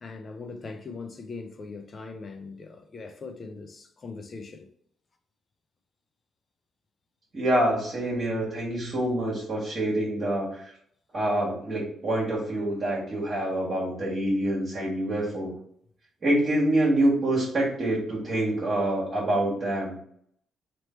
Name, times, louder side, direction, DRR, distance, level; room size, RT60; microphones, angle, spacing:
voice 1, 0.0-4.7, left 4 dB, 40° left, 0.5 m, -40 dB
voice 2, 7.3-10.7 11.1-15.5 16.2-20.0, right 1 dB, 40° right, 1.5 m, -26 dB
3.1 x 3.0 x 4.3 m
cardioid pair, 90°, 0 cm